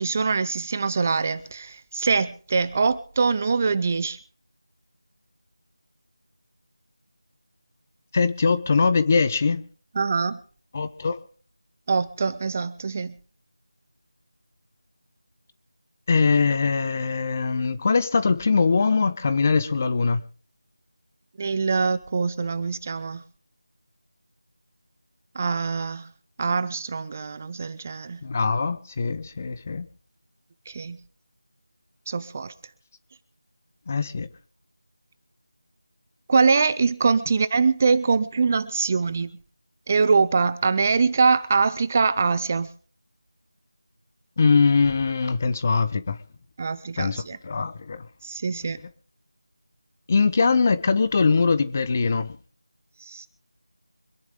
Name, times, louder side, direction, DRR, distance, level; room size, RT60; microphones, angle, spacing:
voice 1, 0.0-4.2 10.0-10.4 11.9-13.1 21.4-23.2 25.3-26.1 26.4-28.2 30.7-31.0 32.1-32.5 36.3-39.3 39.9-42.7 46.6-47.4 48.2-48.8 53.0-53.3, right 4 dB, 25° right, 0.6 m, -23 dB
voice 2, 8.1-9.6 10.7-11.2 16.1-20.2 28.2-29.9 33.9-34.3 44.4-46.2 47.0-48.0 48.6-48.7 50.1-52.4, left 4 dB, 30° left, 0.9 m, -22 dB
25.5 x 10.5 x 3.7 m
figure-of-eight pair, 170°, 3 cm